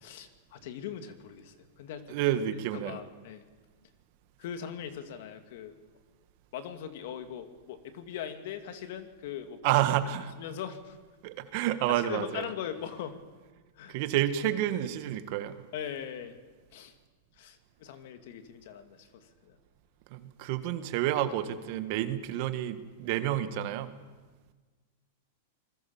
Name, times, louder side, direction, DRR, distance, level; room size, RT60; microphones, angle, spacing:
voice 1, 0.0-2.2 2.7-3.4 4.4-5.7 6.5-9.6 10.4-11.0 12.0-13.2 13.8-14.0 15.7-16.4 16.7-16.9 17.4-19.6, left 9 dB, 60° left, 8 dB, 2.5 m, -40 dB
voice 2, 2.1-3.0 9.6-10.3 11.2-12.5 13.9-15.6 20.1-23.9, right 12 dB, 50° right, 10 dB, 1.7 m, -29 dB
26.0 x 21.5 x 7.3 m, 1.4 s
supercardioid pair, 150°, 0 cm